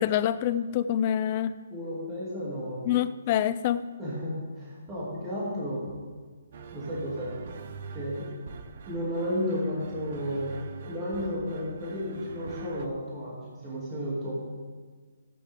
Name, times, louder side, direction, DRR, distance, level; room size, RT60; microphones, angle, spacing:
voice 1, 0.0-1.6 2.8-3.9, left 10 dB, 20° left, 14 dB, 0.3 m, -26 dB
voice 2, 1.7-2.9 4.0-5.8 6.7-7.3 7.9-8.3 8.9-10.6 10.8-14.3, equal, 10° right, -7 dB, 2.6 m, -33 dB
sound 1, 6.5-12.9, right 5 dB, 35° right, 0.6 m, -44 dB
16.0 x 9.3 x 3.6 m, 1.5 s
hypercardioid pair, 180°, 0 cm